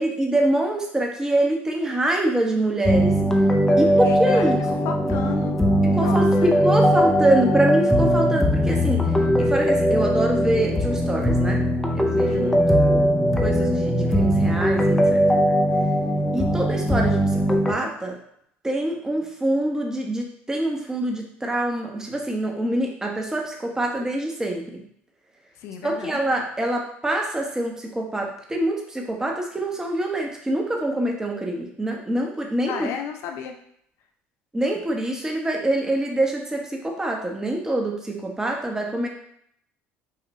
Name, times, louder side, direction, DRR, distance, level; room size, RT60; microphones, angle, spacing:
voice 1, 0.0-3.1 3.8-4.9 5.8-11.6 12.0-12.5 12.8-13.0 13.4-15.2 16.3-18.2 18.6-24.8 25.8-32.9 34.5-39.1, right 1 dB, 10° right, 1 dB, 1.0 m, -25 dB
sound 1, 2.9-17.7, equal, 5° left, 0.6 m, -20 dB
voice 2, 4.0-4.5 4.8-5.6 5.9-6.5 12.3-12.6 25.6-26.2 32.7-33.5, left 7 dB, 70° left, 4 dB, 0.5 m, -33 dB
5.6 x 2.5 x 3.1 m, 0.69 s
supercardioid pair, 95°, 5 cm